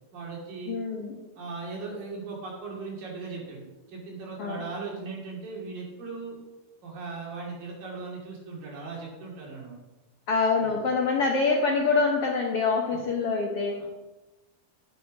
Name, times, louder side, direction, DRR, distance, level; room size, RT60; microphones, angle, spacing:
voice 1, 0.1-0.8 1.4-6.4 6.8-9.8 10.6-10.8 12.9-13.0 13.8-13.9, right 4 dB, 80° right, -3 dB, 4.3 m, -38 dB
voice 2, 0.7-1.2 4.4-4.6 10.3-13.9, left 4 dB, 65° left, -1 dB, 1.5 m, -25 dB
9.2 x 7.5 x 5.1 m, 1.1 s
omnidirectional pair, 3.9 m